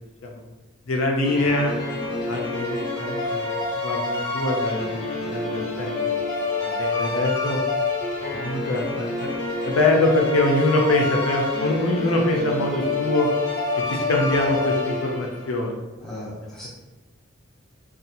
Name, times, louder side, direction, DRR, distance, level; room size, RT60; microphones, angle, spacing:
voice 1, 0.9-1.7 2.3-3.5 3.8-5.9 6.6-7.6 8.4-9.3 9.6-13.3 13.9-15.8, left 2 dB, 75° left, 1 dB, 0.4 m, -24 dB
sound 1, 1.2-15.5, left 3 dB, 25° left, 1.0 m, -27 dB
voice 2, 16.0-16.7, left 1 dB, ahead, -8 dB, 0.8 m, -36 dB
2.7 x 2.3 x 2.5 m, 1.2 s
head